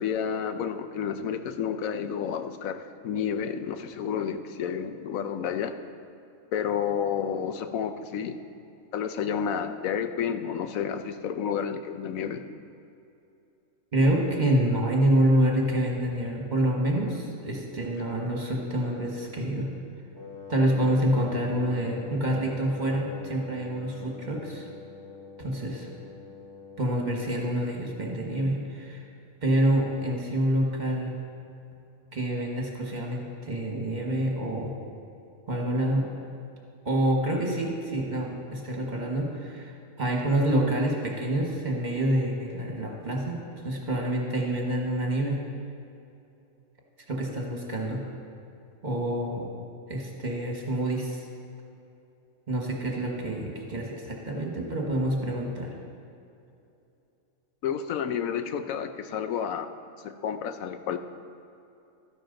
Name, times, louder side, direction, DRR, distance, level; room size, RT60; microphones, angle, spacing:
voice 1, 0.0-5.7 6.5-8.3 8.9-12.4 57.6-59.7 60.0-61.0, left 7 dB, 80° left, 9 dB, 1.1 m, -30 dB
voice 2, 13.9-19.7 20.5-24.7 25.4-25.9 26.8-29.1 29.4-31.1 32.1-34.7 35.5-36.0 36.8-39.7 40.0-45.4 47.1-48.0 48.8-49.5 49.9-51.3 52.5-55.7, right 1 dB, 35° right, -1 dB, 1.5 m, -27 dB
Wind instrument woodwind instrument, 20.2-27.8, left 5 dB, 20° left, 1.3 m, -43 dB
13.0 x 10.5 x 4.0 m, 2.7 s
omnidirectional pair, 1.4 m